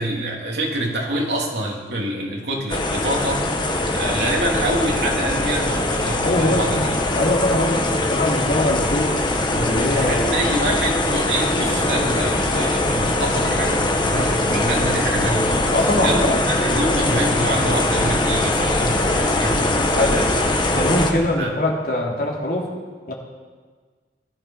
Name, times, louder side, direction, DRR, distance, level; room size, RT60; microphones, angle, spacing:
voice 1, 0.0-3.4 3.9-7.0 9.9-20.3 21.1-21.5, right 1 dB, 70° right, -1 dB, 3.4 m, -26 dB
sound 1, 2.7-21.1, left 2 dB, 25° left, 1.4 m, -21 dB
voice 2, 6.2-9.1 9.5-10.5 15.7-16.4 19.9-20.2 20.7-22.7 23.1-23.2, left 1 dB, 55° left, -1 dB, 3.2 m, -22 dB
20.0 x 12.0 x 5.8 m, 1.5 s
head